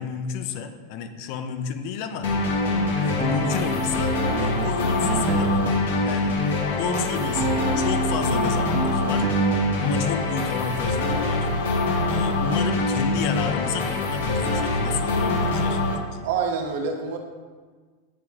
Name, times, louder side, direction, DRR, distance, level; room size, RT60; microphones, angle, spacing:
voice 1, 0.0-2.3 3.0-5.6 6.0-6.4 6.8-9.3 9.8-11.5 12.0-16.3, left 6 dB, 45° left, 8 dB, 0.5 m, -31 dB
sound 1, 2.2-16.0, left 2 dB, 80° left, 1.1 m, -24 dB
sound 2, 2.2-6.1 6.4-10.2, right 4 dB, 30° right, 0.3 m, -29 dB
voice 2, 16.2-17.2, right 5 dB, 65° right, 3 dB, 0.9 m, -26 dB
9.3 x 3.2 x 3.6 m, 1.5 s
supercardioid pair, 170°, 0 cm